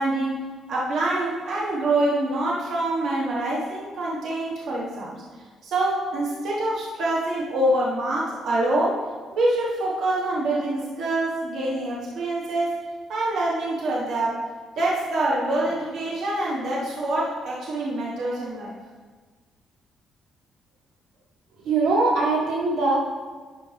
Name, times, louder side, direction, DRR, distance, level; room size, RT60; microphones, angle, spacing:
voice 1, 0.0-5.2 5.6-9.0 9.3-12.7 13.1-14.4 14.8-18.8, right 1 dB, 70° right, -5 dB, 1.5 m, -25 dB
voice 2, 21.6-23.0, right 3 dB, 90° right, -4 dB, 1.6 m, -21 dB
10.5 x 5.1 x 3.4 m, 1.4 s
cardioid pair, 125°, 0 cm